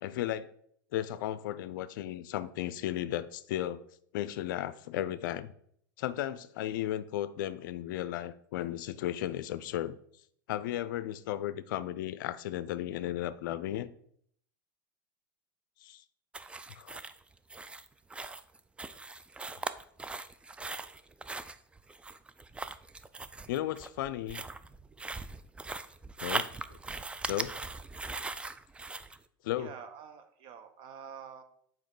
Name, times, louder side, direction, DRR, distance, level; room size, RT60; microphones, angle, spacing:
voice 1, 0.0-0.5 0.9-3.8 4.1-5.5 6.0-10.0 10.5-13.9 15.8-16.0 16.8-17.0 23.5-24.4 26.2-26.5 27.3-27.5 29.4-29.7, left 12 dB, 70° left, 0.4 m, -35 dB
sound 1, 16.3-29.2, right 3 dB, 10° right, 0.3 m, -40 dB
voice 2, 29.6-31.4, right 7 dB, 50° right, 1.0 m, -47 dB
5.6 x 4.6 x 4.8 m
hypercardioid pair, 95°, 11 cm